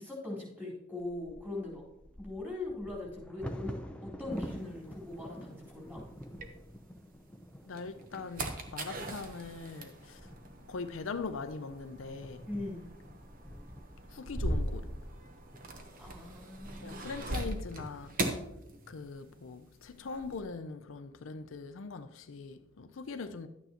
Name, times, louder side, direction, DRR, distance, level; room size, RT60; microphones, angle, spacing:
voice 1, 0.0-1.8 2.2-6.0 12.5-12.8 16.0-17.0, left 2 dB, 10° right, 3.9 m, -41 dB
Bird vocalization bird call bird song / Wind / Thunder, 1.0-16.9 17.5-17.6 18.0-18.4 18.8-19.3, equal, 5° left, 0.6 m, -48 dB
sound 1, 4.4-7.1 7.6-19.4 19.6-20.4, right 1 dB, 45° right, 1.0 m, -40 dB
voice 2, 7.6-10.2 10.7-12.5 14.1-14.9 16.8-18.1 18.9-23.5, left 4 dB, 70° left, 0.5 m, -41 dB
12.0 x 9.1 x 2.9 m
head